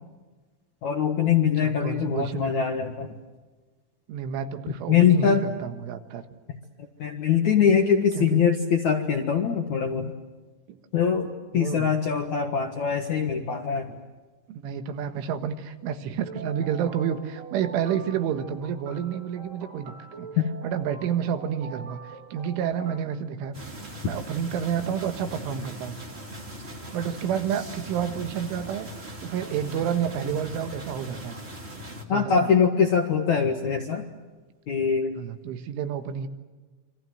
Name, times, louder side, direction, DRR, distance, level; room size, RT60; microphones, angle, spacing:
voice 1, 0.8-3.2 4.9-5.4 7.0-10.1 10.9-14.0 20.4-20.5 32.1-34.0 34.7-35.2, left 7 dB, 60° left, 3 dB, 2.0 m, -23 dB
voice 2, 1.6-2.5 4.1-6.2 8.2-8.4 10.7-10.8 11.5-11.9 14.5-20.3 20.6-23.6 24.0-26.0 26.9-31.4 32.1-32.5 35.2-36.3, right 8 dB, 80° right, 8 dB, 3.9 m, -30 dB
sound 1, 16.2-23.0, right 5 dB, 60° right, 5.1 m, -43 dB
sound 2, 23.5-32.0, equal, 25° right, 1.6 m, -40 dB
28.0 x 25.0 x 7.8 m, 1.3 s
omnidirectional pair, 5.5 m